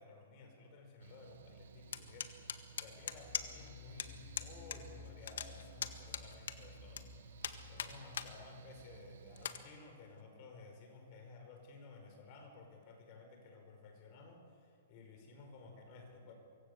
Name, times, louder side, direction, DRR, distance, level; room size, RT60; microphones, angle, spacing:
voice 1, 0.0-7.1 7.7-16.3, left 3 dB, 35° left, 3 dB, 5.2 m, -55 dB
Mechanical fan, 1.0-9.5, right 7 dB, 70° right, 1.5 m, -57 dB
sound 1, 1.9-3.7 4.0-4.1 4.4-4.8 5.1-7.0 7.4-8.3 8.7-8.8 9.4-9.6, left 8 dB, 80° left, 1.7 m, -40 dB
sound 2, 2.8-9.4, left 5 dB, 10° left, 2.1 m, -57 dB
24.5 x 24.0 x 6.8 m, 2.3 s
hypercardioid pair, 165°, 0 cm